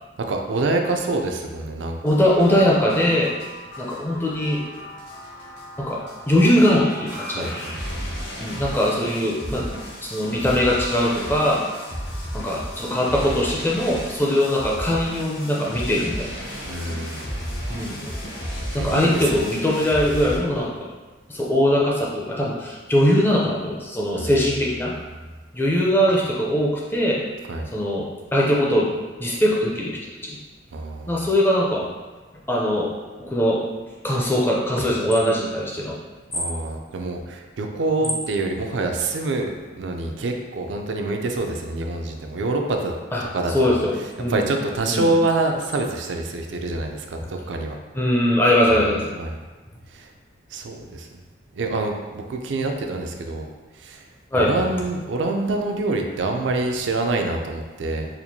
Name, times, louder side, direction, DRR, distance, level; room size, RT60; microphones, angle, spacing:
voice 1, 0.3-2.0 7.3-7.7 16.6-17.3 18.8-19.4 24.1-24.4 27.5-27.7 30.7-31.2 36.3-39.5 39.8-42.9 43.3-43.8 44.3-47.8 49.2-49.3 49.9-50.1 50.5-51.1 51.5-53.5 53.8-54.1 54.4-58.1, right 2 dB, 70° right, 3 dB, 0.4 m, -26 dB
sound 1, 2.0-20.4, equal, 65° left, 1.1 m, -34 dB
voice 2, 2.0-3.3 3.8-4.6 5.8-7.6 8.4-9.7 10.0-11.6 12.3-16.4 17.7-18.1 18.7-20.7 21.3-24.9 25.5-27.2 27.7-28.9 29.2-30.4 31.1-31.9 32.5-32.9 33.2-33.6 34.0-36.0 38.0-38.1 43.1-44.5 44.9-45.1 47.9-49.1 54.3-54.5, equal, 10° left, -3 dB, 0.4 m, -21 dB
4.3 x 2.5 x 2.7 m, 1.3 s
head